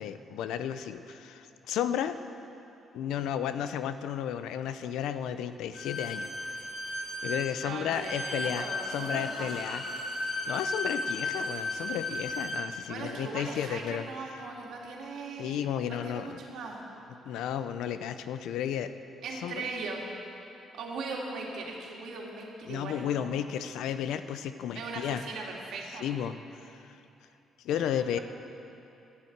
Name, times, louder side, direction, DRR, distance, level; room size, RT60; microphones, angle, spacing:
voice 1, 0.0-2.2 2.9-6.6 7.2-9.8 10.5-14.0 15.4-16.4 17.3-18.9 19.3-19.7 22.7-25.2 26.0-26.8 27.6-28.2, left 9 dB, 85° left, 11 dB, 0.6 m, -33 dB
Bowed string instrument, 5.7-12.6, left 2 dB, 65° left, 3.7 m, -35 dB
voice 2, 7.6-9.5 12.9-16.8 19.2-20.1 20.7-23.4 24.7-26.1 27.7-28.2, right 3 dB, 80° right, -1 dB, 2.4 m, -39 dB
12.5 x 10.5 x 8.0 m, 2.8 s
cardioid pair, 90°, 0 cm